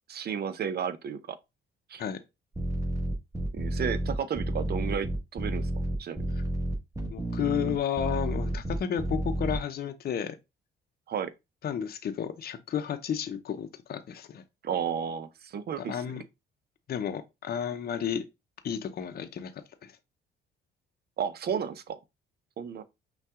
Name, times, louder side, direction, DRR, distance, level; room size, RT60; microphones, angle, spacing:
voice 1, 0.1-1.4 1.9-2.0 3.5-5.7 6.0-6.2 11.1-11.3 14.6-16.1 21.2-22.0 22.6-22.8, right 7 dB, 55° right, 0.6 m, -33 dB
sound 1, 2.5-9.6, right 1 dB, 15° right, 1.5 m, -30 dB
voice 2, 7.1-10.4 11.6-14.4 15.8-16.2 16.9-18.2 18.6-19.9, left 8 dB, 50° left, 0.7 m, -32 dB
5.6 x 2.3 x 3.6 m
cardioid pair, 90°, 20 cm